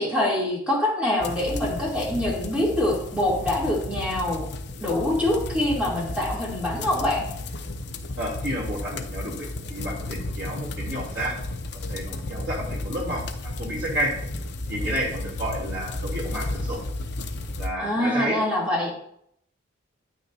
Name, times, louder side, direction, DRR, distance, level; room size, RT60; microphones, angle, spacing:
voice 1, 0.0-4.4 4.8-7.2 17.8-18.9, left 1 dB, 5° right, -5 dB, 2.8 m, -25 dB
sound 1, 1.2-17.7, left 2 dB, 55° left, 0.7 m, -33 dB
voice 2, 8.1-11.4 11.9-14.1 14.7-16.8 17.6-18.4, equal, 65° right, -4 dB, 3.0 m, -31 dB
9.3 x 9.3 x 2.7 m, 0.69 s
head